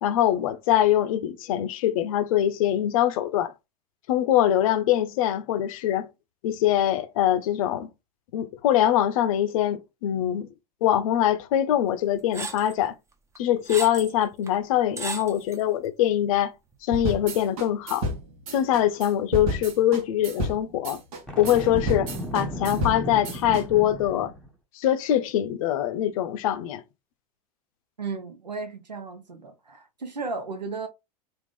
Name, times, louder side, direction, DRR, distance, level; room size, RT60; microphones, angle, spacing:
voice 1, 0.0-3.5 4.1-6.1 6.4-7.9 8.3-10.5 10.8-13.0 13.4-16.5 16.8-18.1 18.5-21.0 21.4-24.3 24.8-26.8, left 11 dB, 55° left, 0.6 m, -23 dB
sound 1, 12.3-12.7 13.3-14.1 14.5-14.6 15.0-15.6, right 3 dB, 15° right, 0.7 m, -34 dB
sound 2, 16.9-23.6, right 1 dB, 60° right, 1.2 m, -31 dB
Boom, 21.3-24.5, equal, 5° left, 1.4 m, -34 dB
voice 2, 28.0-30.9, right 4 dB, 85° right, 0.7 m, -34 dB
3.6 x 2.5 x 3.3 m
figure-of-eight pair, 85°, 21 cm